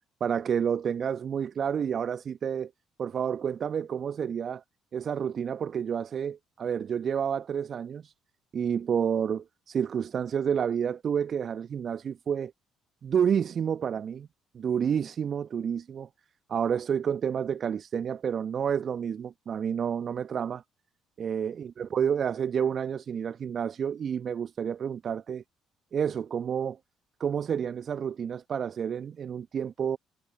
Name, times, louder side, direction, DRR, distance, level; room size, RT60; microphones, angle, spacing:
voice 1, 0.2-2.7 3.0-4.6 4.9-8.1 8.5-12.5 13.0-14.3 14.5-16.1 16.5-20.6 21.2-25.4 25.9-26.8 27.2-30.0, right 7 dB, 45° right, 1.4 m, -29 dB
figure-of-eight pair, 50°, 0 cm